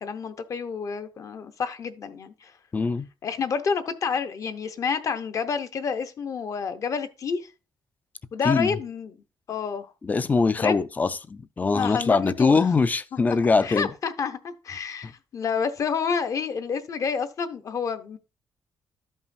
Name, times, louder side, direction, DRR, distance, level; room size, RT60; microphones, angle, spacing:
voice 1, 0.0-2.5 3.2-7.5 8.3-9.1 9.5-9.9 10.6-10.8 11.7-12.6 13.6-18.2, left 6 dB, 45° left, 0.7 m, -29 dB
voice 2, 2.7-3.1 8.4-8.8 10.0-13.9 15.0-15.1, left 4 dB, 20° left, 0.4 m, -22 dB
13.0 x 5.5 x 2.6 m
cardioid pair, 165°, 8 cm